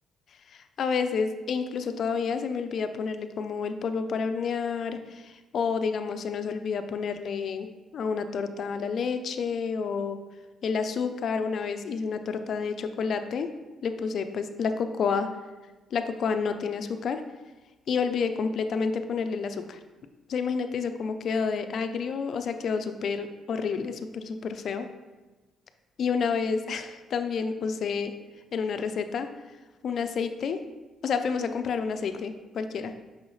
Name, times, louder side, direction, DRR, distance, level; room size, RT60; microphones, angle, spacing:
voice 1, 0.5-7.7 7.9-10.2 10.6-13.5 13.8-15.3 15.9-17.2 17.9-19.8 20.3-24.9 26.0-28.1 28.5-29.3 29.8-30.6 31.0-32.9, left 5 dB, 60° left, 9 dB, 0.5 m, -29 dB
6.2 x 5.7 x 3.2 m, 1.2 s
cardioid pair, 90°, 0 cm